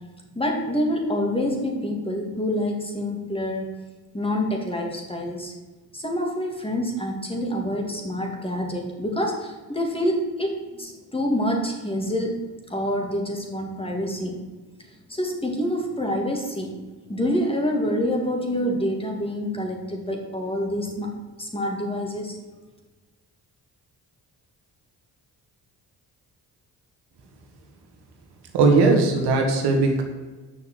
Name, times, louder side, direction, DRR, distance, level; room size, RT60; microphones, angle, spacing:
voice 1, 0.3-3.8 4.1-5.5 5.9-12.4 12.7-14.4 15.1-16.7 17.1-21.1 21.4-22.4, equal, 15° left, 1 dB, 2.6 m, -27 dB
voice 2, 28.5-30.0, right 3 dB, 90° right, 3 dB, 1.7 m, -18 dB
7.1 x 6.3 x 7.7 m, 1.3 s
cardioid pair, 70°, 39 cm